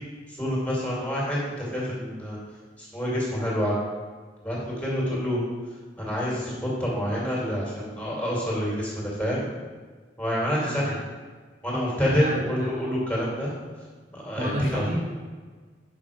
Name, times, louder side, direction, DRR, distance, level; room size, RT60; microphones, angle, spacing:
voice 1, 0.3-2.4 2.8-3.8 4.4-5.4 6.0-9.4 10.2-10.9 11.6-13.5 14.1-14.9, equal, 10° left, -6 dB, 2.2 m, -27 dB
voice 2, 10.6-11.0 12.2-12.7 14.4-15.1, equal, 45° right, -2 dB, 1.1 m, -30 dB
6.1 x 5.7 x 4.9 m, 1.5 s
head